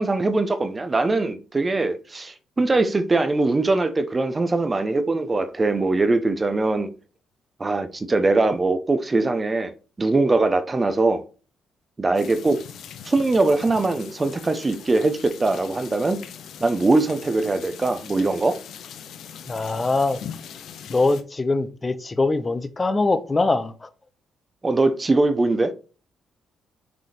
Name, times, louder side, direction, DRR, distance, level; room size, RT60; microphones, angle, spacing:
voice 1, 0.0-6.9 7.6-9.7 10.0-11.2 12.0-12.6 13.1-16.2 16.6-18.6 24.6-25.7, right 2 dB, 25° right, 0.7 m, -21 dB
sound 1, 12.1-21.2, left 8 dB, 75° left, 0.7 m, -41 dB
voice 2, 19.5-20.2 20.9-23.9, left 3 dB, 25° left, 0.6 m, -22 dB
6.2 x 3.5 x 4.3 m
cardioid pair, 90°, 0 cm